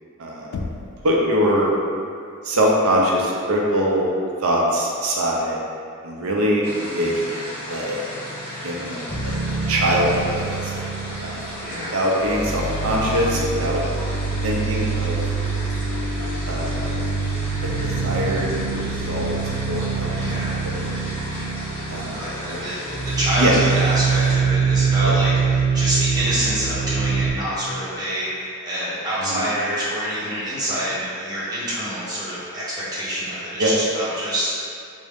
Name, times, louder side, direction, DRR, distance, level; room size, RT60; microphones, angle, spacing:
voice 1, 0.2-0.6 1.0-1.7 2.4-4.1 4.4-5.6 6.0-7.3 7.7-8.0 8.6-9.1 9.7-10.7 11.2-13.8 14.4-15.2 16.5-16.9 17.6-18.5 18.7-19.3 19.7-21.2 21.9-22.2 22.4-22.7 23.4-23.5 25.0-25.2 29.3-29.4 33.6-33.7, equal, 65° right, -3 dB, 0.6 m, -23 dB
Knock, 0.5-1.2, left 3 dB, 85° left, 0.3 m, -31 dB
sound 1, 6.6-24.3, equal, 25° left, 1.4 m, -35 dB
sound 2, 9.1-11.9 12.2-27.3, right 5 dB, 5° left, 1.4 m, -24 dB
voice 2, 11.6-12.0 20.1-20.6 22.0-34.6, equal, 20° right, -10 dB, 1.0 m, -26 dB
3.6 x 2.1 x 3.5 m, 2.4 s
head